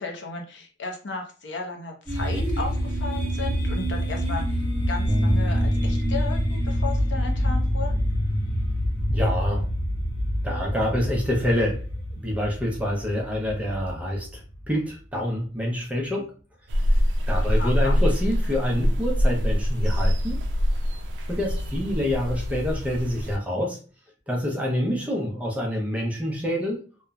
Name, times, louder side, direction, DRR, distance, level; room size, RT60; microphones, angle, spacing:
voice 1, 0.0-7.9 17.6-18.0, left 4 dB, 75° left, 2 dB, 0.6 m, -35 dB
sound 1, 2.1-15.0, equal, 10° left, 1.0 m, -27 dB
Bass guitar, 5.1-11.3, equal, 45° right, 0.9 m, -30 dB
voice 2, 9.1-9.7 10.4-11.8 12.2-16.3 17.3-20.4 21.3-23.8 24.3-26.8, equal, 10° right, -1 dB, 0.5 m, -27 dB
sound 2, 16.7-23.4, equal, 75° right, 0.4 m, -24 dB
2.9 x 2.1 x 2.3 m, 0.37 s
head